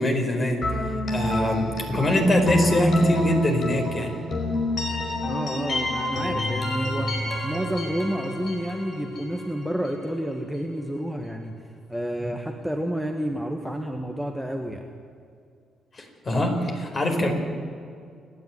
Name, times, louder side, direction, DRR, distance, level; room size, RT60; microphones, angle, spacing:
voice 1, 0.0-4.1 15.9-17.3, left 1 dB, 35° left, 3 dB, 4.8 m, -23 dB
sound 1, 0.6-10.4, left 1 dB, 50° left, 5.2 m, -28 dB
voice 2, 5.2-7.1 7.4-11.5 11.9-14.8, equal, ahead, 3 dB, 1.7 m, -30 dB
28.5 x 10.5 x 9.9 m, 2.3 s
cardioid pair, 90°, 0 cm